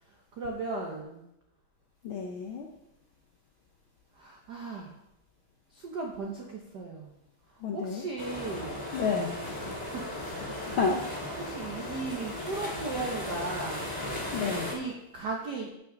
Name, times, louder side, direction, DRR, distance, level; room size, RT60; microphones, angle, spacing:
voice 1, 0.0-1.3 4.1-4.9 5.7-7.1 7.5-8.9 9.6-10.1 10.5-10.8 11.4-13.9 14.7-15.8, right 3 dB, 85° right, 1 dB, 0.9 m, -37 dB
voice 2, 2.0-2.7 7.6-8.0 8.9-9.4 10.7-11.0 14.3-14.7, left 5 dB, 75° left, 1 dB, 1.2 m, -30 dB
sound 1, 8.2-14.7, left 1 dB, 5° right, 2.9 m, -36 dB
sound 2, 9.4-14.5, left 2 dB, 55° left, 2.3 m, -48 dB
14.5 x 6.0 x 3.8 m, 0.85 s
omnidirectional pair, 3.4 m